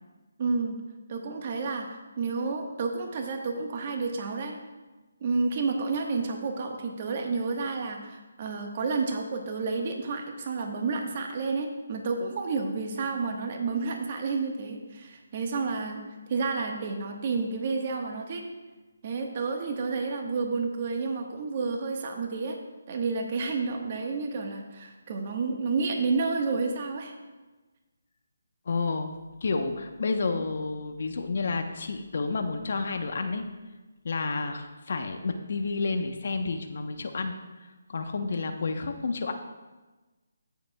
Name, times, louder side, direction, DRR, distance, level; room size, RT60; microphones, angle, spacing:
voice 1, 0.4-0.8 1.1-1.9 2.2-4.6 5.2-16.0 16.3-18.4 19.0-22.6 22.9-27.1, right 4 dB, 40° right, 3 dB, 1.3 m, -30 dB
voice 2, 28.7-29.1 29.4-33.4 34.0-37.3 37.9-39.3, left 3 dB, 55° left, 6 dB, 1.0 m, -30 dB
16.5 x 7.1 x 2.3 m, 1.2 s
figure-of-eight pair, 155°, 0 cm